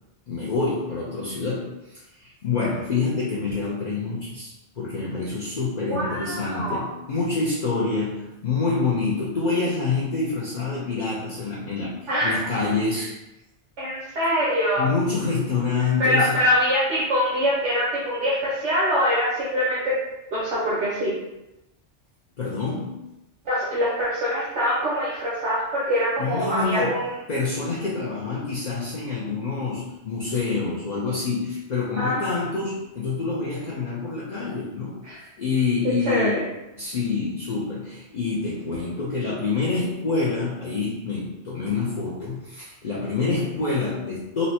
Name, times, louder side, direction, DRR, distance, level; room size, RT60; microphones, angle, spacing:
voice 1, 0.3-13.2 14.8-16.4 22.4-23.0 26.2-27.0 27.3-35.0 35.4-36.4 36.7-44.5, left 4 dB, 50° left, -6 dB, 0.6 m, -27 dB
voice 2, 5.9-6.9 12.1-12.3 13.8-14.8 16.0-20.0 20.3-21.1 23.4-27.1 32.0-32.5 35.0-35.2 36.1-36.4, equal, 85° right, -8 dB, 1.2 m, -24 dB
4.0 x 2.1 x 2.7 m, 0.95 s
omnidirectional pair, 1.2 m